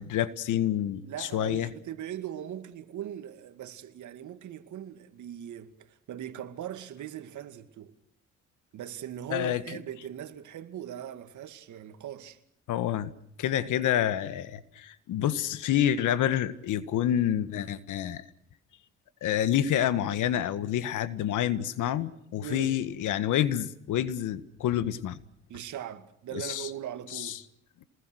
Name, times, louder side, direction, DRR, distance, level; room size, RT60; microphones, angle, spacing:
voice 1, 0.0-1.7 9.3-9.6 12.7-13.1 13.4-18.2 19.2-25.2 26.3-26.7 27.1-27.3, left 11 dB, 85° left, 1.7 m, -28 dB
voice 2, 1.0-7.9 8.7-12.4 22.4-22.8 25.5-27.4, right 10 dB, 75° right, 2.3 m, -40 dB
27.5 x 20.5 x 6.4 m
cardioid pair, 90°, 30 cm